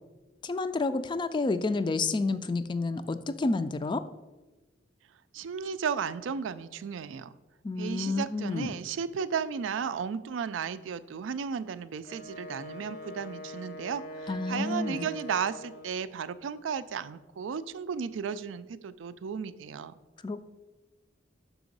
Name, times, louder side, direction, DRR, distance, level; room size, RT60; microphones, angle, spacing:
voice 1, 0.4-4.0 7.6-8.7 14.3-15.1 20.2-20.4, left 3 dB, 25° left, 12 dB, 0.3 m, -30 dB
voice 2, 5.3-7.4 7.8-19.9, right 6 dB, 90° right, 14 dB, 0.4 m, -34 dB
Wind instrument woodwind instrument, 12.0-16.1, equal, 55° left, 0.7 m, -42 dB
6.0 x 4.8 x 5.2 m, 1.1 s
head